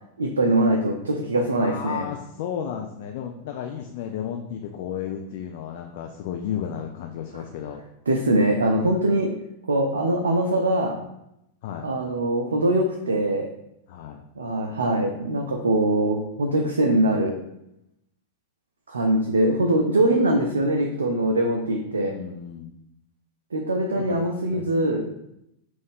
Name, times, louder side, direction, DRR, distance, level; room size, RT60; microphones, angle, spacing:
voice 1, 0.2-2.1 8.1-9.3 9.7-11.0 11.8-13.5 14.4-17.4 18.9-22.1 23.5-25.1, right 1 dB, 75° right, 2 dB, 0.4 m, -22 dB
voice 2, 1.6-7.8 11.6-11.8 13.9-14.2 22.0-22.7 24.0-25.2, left 9 dB, 50° left, 3 dB, 0.3 m, -33 dB
3.7 x 2.5 x 3.5 m, 0.83 s
figure-of-eight pair, 90°, 0 cm